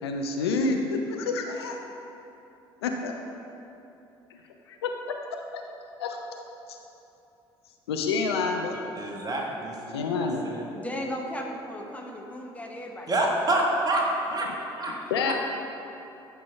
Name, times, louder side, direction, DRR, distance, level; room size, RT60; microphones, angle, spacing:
voice 1, 0.0-1.8 2.8-3.1 4.7-5.1 5.5-5.6 6.0-6.2 6.7-6.8 7.9-8.8 9.9-10.5 15.1-15.3, left 4 dB, 75° left, 3 dB, 0.6 m, -28 dB
voice 2, 9.0-10.6 13.1-15.3, right 1 dB, 30° right, -1 dB, 1.5 m, -28 dB
voice 3, 10.7-13.4, equal, 10° left, 0 dB, 1.1 m, -36 dB
11.0 x 5.1 x 3.4 m, 2.9 s
figure-of-eight pair, 55°, 13 cm